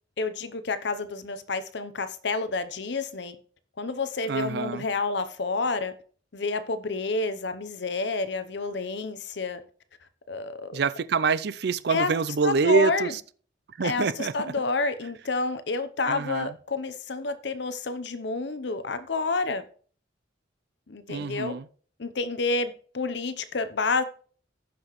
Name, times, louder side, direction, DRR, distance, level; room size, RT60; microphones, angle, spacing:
voice 1, 0.2-3.4 3.8-5.9 6.3-9.6 10.3-10.8 11.9-12.1 12.4-13.1 13.8-19.6 20.9-21.6 22.0-24.0, left 3 dB, 65° left, 0.7 m, -29 dB
voice 2, 4.3-4.8 10.7-13.1 13.8-14.3 16.1-16.5 21.1-21.7, right 5 dB, 60° right, 0.4 m, -25 dB
15.0 x 5.9 x 3.1 m
head